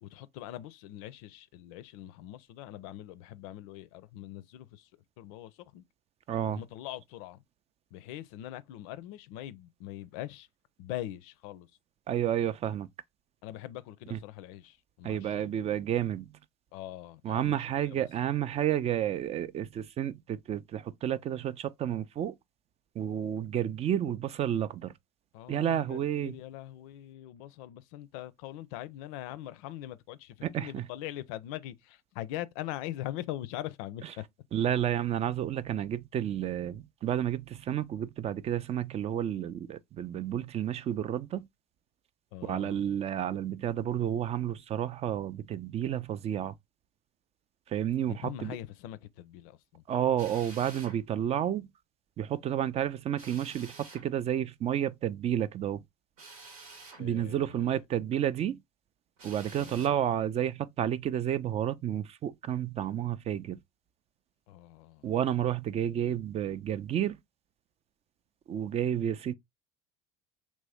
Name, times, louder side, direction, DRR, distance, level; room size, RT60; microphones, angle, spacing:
voice 1, 0.0-4.9 5.2-5.8 6.4-7.4 7.9-10.5 10.8-11.7 13.4-15.6 16.7-18.1 25.3-34.2 42.3-42.8 48.1-49.8 57.0-57.8 59.6-60.0 64.5-65.1, left 13 dB, 75° left, 0.4 m, -42 dB
voice 2, 6.3-6.6 12.1-12.9 14.1-14.2 15.0-16.3 17.2-22.4 23.0-24.9 25.5-26.3 30.4-30.9 34.5-41.5 42.4-46.5 47.7-48.6 49.9-51.7 52.2-55.8 57.0-58.6 59.2-63.6 65.0-67.2 68.5-69.3, right 10 dB, 35° right, 0.4 m, -31 dB
Drill, 50.2-51.0 53.2-54.1 56.2-57.1 59.2-60.0, right 3 dB, 85° right, 1.2 m, -49 dB
3.1 x 2.7 x 3.3 m
hypercardioid pair, 80°, 17 cm